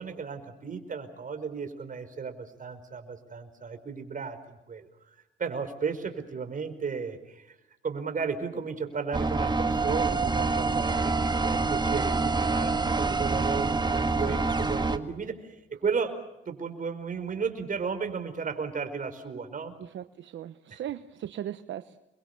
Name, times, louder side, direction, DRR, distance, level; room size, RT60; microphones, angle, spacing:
voice 1, 0.0-4.9 5.4-7.5 7.8-16.1 16.4-19.7 20.7-20.8, right 5 dB, 40° right, 8 dB, 5.0 m, -34 dB
sound 1, 9.1-15.0, right 3 dB, 20° right, 1.9 m, -26 dB
voice 2, 19.8-22.0, right 11 dB, 70° right, 10 dB, 1.1 m, -38 dB
29.0 x 23.0 x 6.8 m, 0.93 s
cardioid pair, 90°, 20 cm